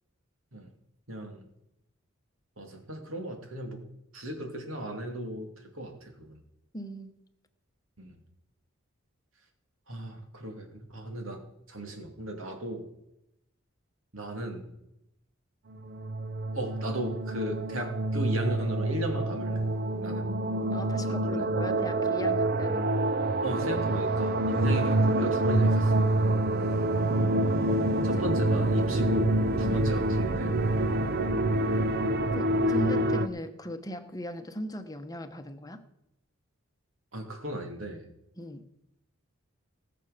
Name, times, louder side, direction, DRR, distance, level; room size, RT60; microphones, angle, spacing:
voice 1, 1.1-1.5 2.6-3.8 4.1-5.5 5.7-6.4 8.0-8.2 9.9-11.4 11.7-12.9 14.1-14.7 16.5-19.6 20.0-20.3 21.2-21.4 23.4-26.0 28.0-30.6 37.1-38.0, right 1 dB, 75° right, 3 dB, 2.6 m, -36 dB
voice 2, 6.7-7.2 20.7-23.0 27.7-28.2 29.6-29.9 32.3-35.8 38.4-38.6, equal, 20° left, 7 dB, 1.0 m, -38 dB
sound 1, 15.7-33.3, right 1 dB, 50° right, 0.7 m, -27 dB
18.5 x 6.9 x 6.6 m, 0.85 s
head